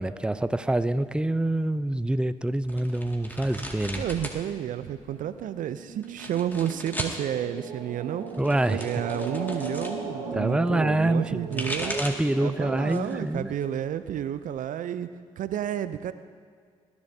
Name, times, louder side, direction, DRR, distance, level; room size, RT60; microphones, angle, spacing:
voice 1, 0.0-4.0 8.4-8.8 10.3-13.5, right 1 dB, 5° right, 13 dB, 0.5 m, -26 dB
sound 1, 2.6-4.4 4.7-5.4 6.0-7.2 8.2-10.0 11.2-12.3 12.8-13.2 13.6-14.6, left 1 dB, 10° left, 2.1 m, -37 dB
voice 2, 4.0-8.3 8.7-12.0 12.4-15.1 15.4-16.1, right 10 dB, 60° right, 13 dB, 0.5 m, -31 dB
sound 2, 4.0-13.3, right 4 dB, 90° right, 1.2 m, -38 dB
20.5 x 11.5 x 2.8 m, 2.1 s
hypercardioid pair, 40°, 15 cm